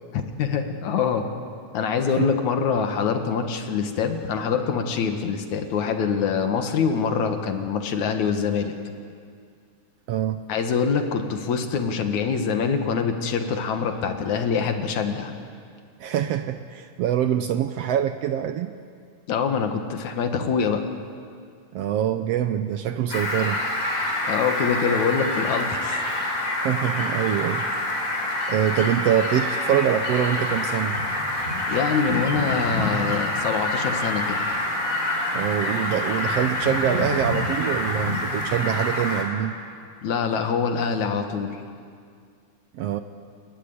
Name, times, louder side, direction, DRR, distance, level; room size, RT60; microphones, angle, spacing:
voice 1, 0.4-1.3 1.7-8.8 10.5-15.3 19.3-20.8 24.3-26.0 31.7-34.4 40.0-41.6, left 6 dB, 75° left, 6 dB, 3.0 m, -24 dB
voice 2, 10.1-10.4 16.0-18.7 21.7-23.6 26.6-27.7 28.5-31.0 35.3-39.5 42.7-43.0, right 10 dB, 75° right, 9 dB, 1.6 m, -24 dB
Fowl, 23.1-39.2, left 1 dB, 25° left, 4.2 m, -26 dB
29.5 x 15.0 x 9.6 m, 2.2 s
omnidirectional pair, 3.4 m